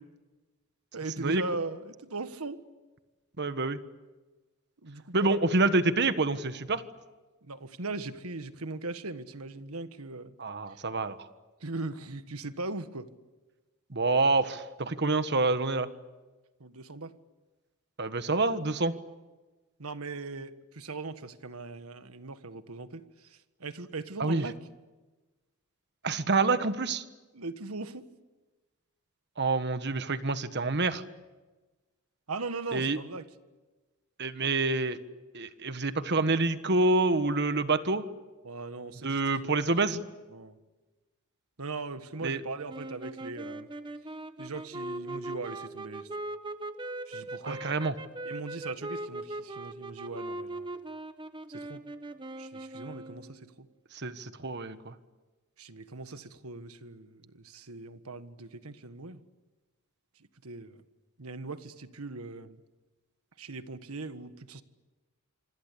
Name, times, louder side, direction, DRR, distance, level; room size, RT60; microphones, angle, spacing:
voice 1, 0.9-2.6 4.8-5.4 7.4-10.4 10.7-10.8 11.6-13.1 16.6-17.1 19.8-24.6 27.3-28.1 32.3-33.2 38.4-39.2 39.8-40.0 40.3-40.6 41.6-43.7 44.4-46.1 47.1-47.6 48.2-50.7 51.5-51.8 52.4-53.7 55.6-59.2 60.4-60.8 61.2-62.6 63.4-64.6, right 3 dB, 85° right, 1.6 m, -39 dB
voice 2, 3.4-3.8 5.1-6.8 10.4-11.2 13.9-15.9 18.0-18.9 24.2-24.5 26.0-27.0 29.4-31.0 32.7-33.0 34.2-35.0 35.3-38.0 39.0-40.0 42.2-42.4 47.4-47.9 53.9-54.9, right 3 dB, 50° right, 1.4 m, -27 dB
sound 1, 42.7-53.4, right 2 dB, 20° right, 1.1 m, -40 dB
26.0 x 26.0 x 8.5 m
head